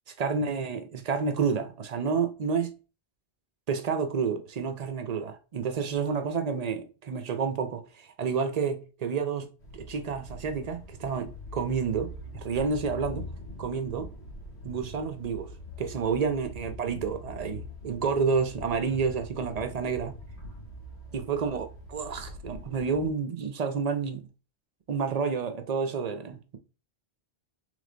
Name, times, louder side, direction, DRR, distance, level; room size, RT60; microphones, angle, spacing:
voice 1, 0.2-2.8 3.7-9.5 9.7-13.3 13.6-14.1 14.6-20.2 21.1-21.7 21.9-24.3 24.9-26.6, right 5 dB, 50° right, 0.5 m, -30 dB
sound 1, 9.6-23.1, left 1 dB, 85° left, 2.0 m, -43 dB
3.4 x 3.3 x 3.8 m
omnidirectional pair, 1.1 m